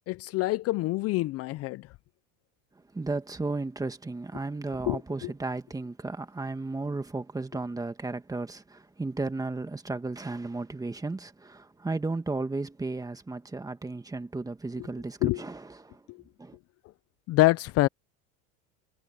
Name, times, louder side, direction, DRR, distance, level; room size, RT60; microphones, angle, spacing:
voice 1, 0.1-1.9 4.9-5.3 15.2-15.4 16.1-16.2 17.3-17.9, left 18 dB, 45° left, 0.5 m, -26 dB
voice 2, 2.9-16.0 16.4-16.6, right 3 dB, 10° right, 1.9 m, -34 dB
supercardioid pair, 120°, 34 cm